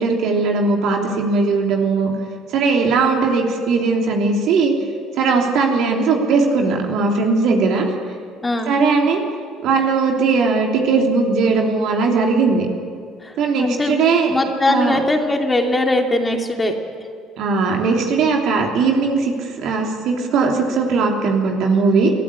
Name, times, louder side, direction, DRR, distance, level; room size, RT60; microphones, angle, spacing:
voice 1, 0.0-2.1 2.5-4.7 5.2-7.9 8.7-9.2 9.6-12.7 13.4-14.3 14.7-15.0 17.4-22.1, right 4 dB, 65° right, 1 dB, 3.2 m, -18 dB
voice 2, 8.4-8.7 13.2-14.0 14.3-16.8, left 2 dB, 20° left, 3 dB, 2.8 m, -20 dB
22.5 x 13.5 x 8.6 m, 2.2 s
hypercardioid pair, 60°, 0 cm